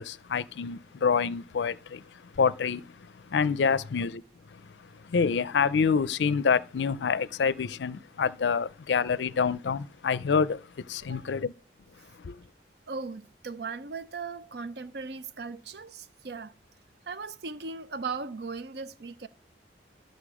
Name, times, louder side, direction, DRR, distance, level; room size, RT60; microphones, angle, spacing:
voice 1, 0.0-4.2 4.5-11.5 12.2-12.4, left 5 dB, 70° left, 0.4 m, -27 dB
voice 2, 12.9-16.5 17.1-19.3, right 4 dB, 60° right, 0.6 m, -38 dB
12.0 x 6.4 x 4.9 m
head